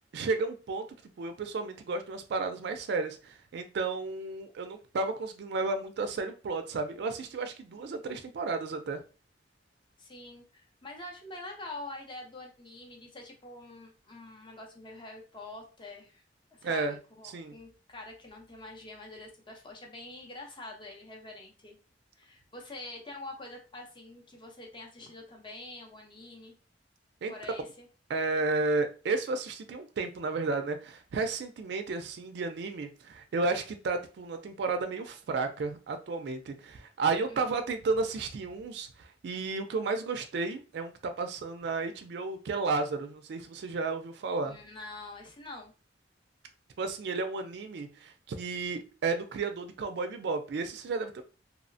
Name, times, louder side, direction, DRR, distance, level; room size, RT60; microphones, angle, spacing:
voice 1, 0.1-0.9 1.2-9.0 16.6-17.0 17.2-17.5 27.2-27.3 28.1-44.6 46.8-51.2, right 3 dB, 65° right, 0.4 m, -32 dB
voice 2, 10.0-16.2 16.5-21.8 22.2-26.5 27.3-27.9 37.3-37.4 44.4-45.7, left 2 dB, 25° left, 0.6 m, -46 dB
2.8 x 2.0 x 2.6 m
head